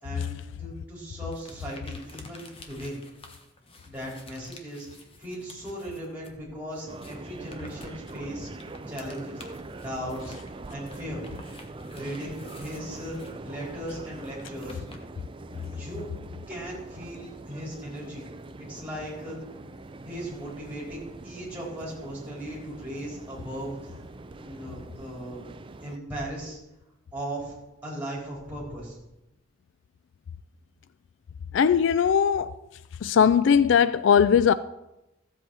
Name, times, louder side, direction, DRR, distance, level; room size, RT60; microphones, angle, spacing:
voice 1, 0.0-3.0 3.9-9.5 9.8-11.2 11.9-14.8 15.7-16.1 16.5-18.3 18.6-19.4 20.0-24.0 24.3-25.4 25.8-26.6 27.1-27.6 27.8-29.0, equal, 5° right, 4.2 m, -38 dB
sound 1, 1.3-6.4 6.7-15.7, left 2 dB, 25° left, 1.1 m, -50 dB
sound 2, 6.9-26.0, right 2 dB, 25° right, 0.4 m, -43 dB
voice 2, 31.5-32.5 33.0-34.5, left 7 dB, 60° left, 0.3 m, -19 dB
14.5 x 7.9 x 4.7 m
head